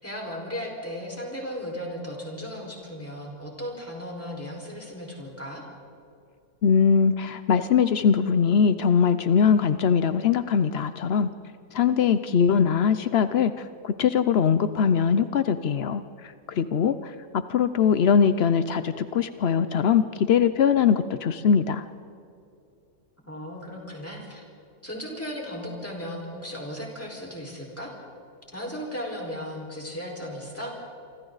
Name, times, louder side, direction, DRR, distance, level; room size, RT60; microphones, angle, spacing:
voice 1, 0.0-5.6 23.3-24.5 24.8-27.9 28.5-30.8, equal, 5° left, -1 dB, 4.7 m, -36 dB
voice 2, 6.6-11.3 11.7-21.9, left 7 dB, 70° left, 12 dB, 0.6 m, -22 dB
28.0 x 25.0 x 4.0 m, 2.6 s
omnidirectional pair, 1.9 m